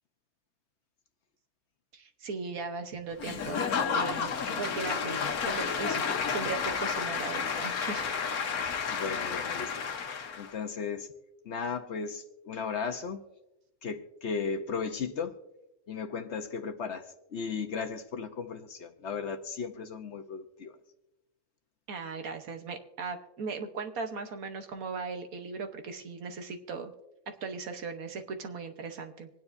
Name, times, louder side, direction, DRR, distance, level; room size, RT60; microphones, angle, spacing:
voice 1, 1.9-3.7 3.9-6.0 6.3-8.6 21.9-26.9 27.3-29.3, right 4 dB, 70° right, 6 dB, 1.5 m, -38 dB
Applause / Crowd, 3.2-10.5, left 6 dB, 80° left, 1.5 m, -31 dB
voice 2, 8.9-9.8 10.4-11.1 11.4-13.2 13.8-15.4 15.9-20.7, left 5 dB, 55° left, 7 dB, 1.0 m, -36 dB
25.5 x 9.6 x 2.6 m, 0.94 s
omnidirectional pair, 1.6 m